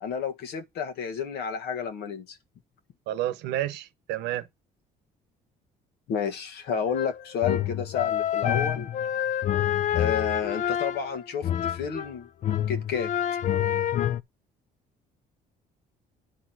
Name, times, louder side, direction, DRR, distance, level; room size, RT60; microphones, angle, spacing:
voice 1, 0.0-2.4 6.1-8.9 9.9-12.3 12.7-13.1, left 7 dB, 75° left, 1.6 m, -31 dB
voice 2, 3.1-4.5, right 13 dB, 85° right, 0.9 m, -30 dB
sound 1, 6.9-12.1 12.4-14.2, left 10 dB, 45° left, 0.5 m, -27 dB
10.0 x 4.1 x 6.2 m
cardioid pair, 110°, 17 cm